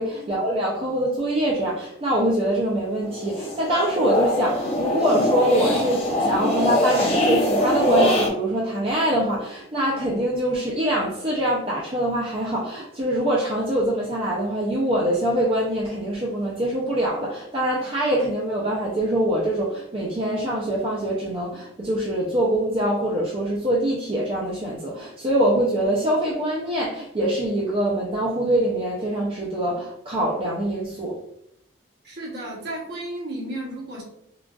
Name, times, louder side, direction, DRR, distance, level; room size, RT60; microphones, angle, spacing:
voice 1, 0.0-31.2, right 1 dB, 30° right, -5 dB, 0.4 m, -24 dB
sound 1, 3.0-8.3, left 1 dB, 30° left, 0.6 m, -22 dB
voice 2, 32.0-34.0, right 1 dB, 55° right, -4 dB, 1.0 m, -33 dB
3.8 x 2.3 x 2.3 m, 0.76 s
head